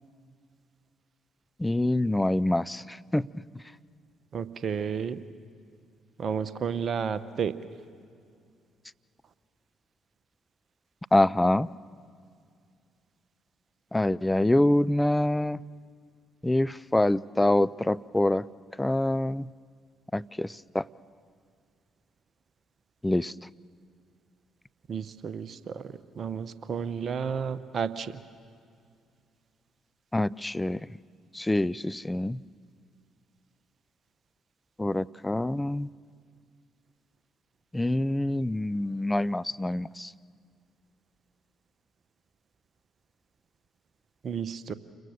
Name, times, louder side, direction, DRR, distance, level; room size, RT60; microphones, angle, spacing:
voice 1, 1.6-3.4 11.1-11.7 13.9-15.6 16.4-18.4 18.8-19.5 20.1-20.8 23.0-23.3 30.1-30.8 31.3-32.4 34.8-35.9 37.7-40.1, left 1 dB, 10° left, 16 dB, 0.5 m, -25 dB
voice 2, 4.3-5.2 6.2-7.5 24.9-28.1 44.2-44.7, right 7 dB, 50° right, 14 dB, 1.1 m, -32 dB
29.0 x 22.5 x 6.7 m, 2.3 s
hypercardioid pair, 45°, 0 cm